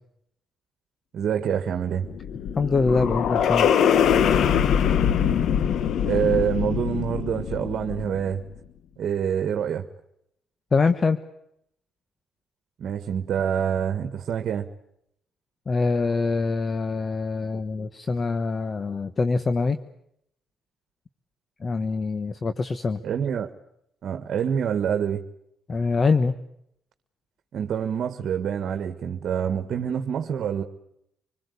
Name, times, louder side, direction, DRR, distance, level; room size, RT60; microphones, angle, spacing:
voice 1, 1.1-2.1 6.1-8.4 9.0-9.9 12.8-14.7 23.0-23.5 24.0-25.2 27.5-30.6, right 8 dB, 65° right, 7 dB, 1.6 m, -26 dB
sound 1, 1.9-8.3, left 8 dB, 70° left, 1.2 m, -23 dB
voice 2, 2.6-3.7 10.7-11.2 15.7-19.8 21.6-23.0 25.7-26.3, left 4 dB, 35° left, 10 dB, 1.2 m, -24 dB
26.5 x 21.5 x 8.3 m, 0.76 s
cardioid pair, 90°, 0 cm